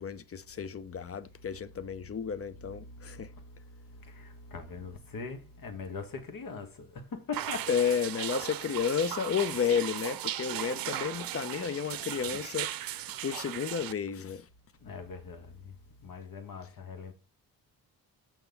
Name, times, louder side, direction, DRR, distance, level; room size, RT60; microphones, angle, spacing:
voice 1, 0.0-3.3 7.7-12.7 13.2-14.4, left 7 dB, 35° left, 0.7 m, -32 dB
voice 2, 2.5-7.7 14.8-15.7 16.0-17.1, left 4 dB, 55° left, 2.0 m, -42 dB
sound 1, 7.3-13.9, right 13 dB, 55° right, 0.7 m, -37 dB
6.8 x 5.7 x 4.1 m
supercardioid pair, 60°, 42 cm